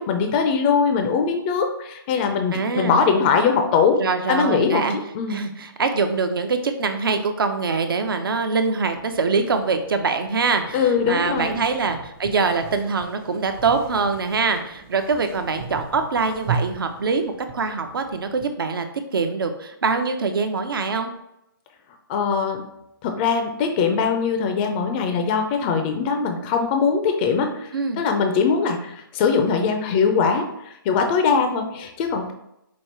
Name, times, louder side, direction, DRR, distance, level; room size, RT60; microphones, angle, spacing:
voice 1, 0.0-4.0 4.3-4.9 5.1-5.5 10.7-11.7 22.1-22.6 23.0-32.3, left 5 dB, 25° left, 5 dB, 0.4 m, -21 dB
voice 2, 2.5-3.0 4.0-5.0 5.3-18.9 19.1-21.1 27.7-28.0, right 4 dB, 70° right, 7 dB, 0.7 m, -24 dB
sound 1, 8.9-18.5, right 5 dB, 35° right, 0.7 m, -37 dB
5.2 x 2.4 x 4.3 m, 0.82 s
hypercardioid pair, 145°, 12 cm